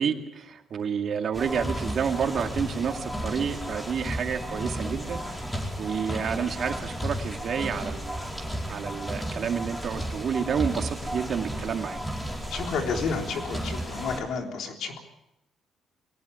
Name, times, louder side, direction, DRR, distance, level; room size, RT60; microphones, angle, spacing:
voice 1, 0.0-5.2 5.8-8.3 8.7-12.0, right 7 dB, 60° right, 5 dB, 2.3 m, -29 dB
sound 1, 1.3-14.2, equal, 10° left, 4.7 m, -33 dB
voice 2, 12.5-15.0, left 5 dB, 75° left, 3 dB, 3.5 m, -31 dB
22.0 x 18.5 x 7.1 m, 0.86 s
cardioid pair, 90°, 0 cm